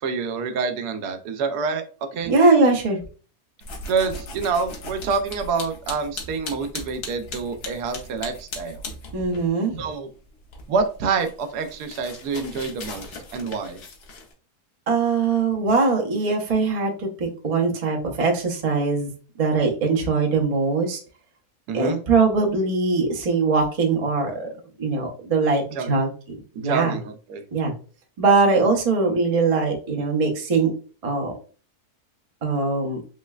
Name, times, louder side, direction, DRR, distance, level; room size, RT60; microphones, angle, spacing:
voice 1, 0.0-1.8 2.1-2.3 3.9-8.8 9.8-10.1 10.7-13.0 13.3-13.8 21.7-22.0 25.7-25.9 26.6-27.4, right 5 dB, 90° right, 8 dB, 1.1 m, -27 dB
voice 2, 2.2-3.0 9.1-9.8 14.9-19.1 19.4-21.0 21.7-24.5 24.8-27.0 27.5-27.7 28.2-30.7 31.0-31.3 32.4-33.0, right 4 dB, 60° right, 0 dB, 0.3 m, -21 dB
sound 1, 3.6-9.5 9.8-14.3, left 2 dB, 80° left, 1.4 m, -38 dB
3.7 x 3.1 x 2.3 m, 0.39 s
omnidirectional pair, 1.6 m